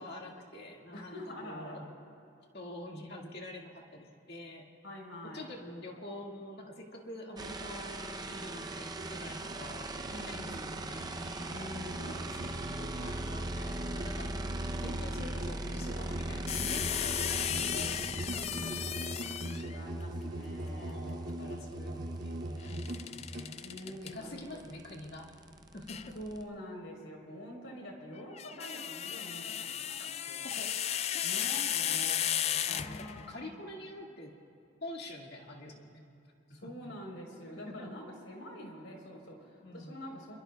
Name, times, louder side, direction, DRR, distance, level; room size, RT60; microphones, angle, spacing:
voice 1, 0.0-1.9 2.5-4.6 5.2-14.4 14.8-19.4 20.7-23.6 23.9-25.4 25.7-26.2 30.0-30.1 30.4-30.7 31.8-32.2 32.5-34.4 34.8-36.0 36.5-36.9 37.7-37.9 39.6-40.0, left 1 dB, 55° left, 0 dB, 2.0 m, -46 dB
voice 2, 0.9-1.8 4.8-5.5 10.1-10.7 11.5-12.3 19.5-21.0 23.6-24.8 26.1-30.5 31.2-31.6 32.6-33.7 36.5-40.4, equal, 90° left, 0 dB, 3.7 m, -46 dB
sound 1, 7.4-19.6 21.7-21.8 22.1-26.4, right 2 dB, 20° right, 0.6 m, -40 dB
Musical instrument, 8.9-23.5, right 1 dB, 50° right, 2.7 m, -41 dB
sound 2, 16.5-19.8 22.7-24.1 25.9-26.1 28.2-33.3, left 10 dB, 35° left, 0.3 m, -34 dB
26.5 x 22.5 x 2.3 m, 2.6 s
head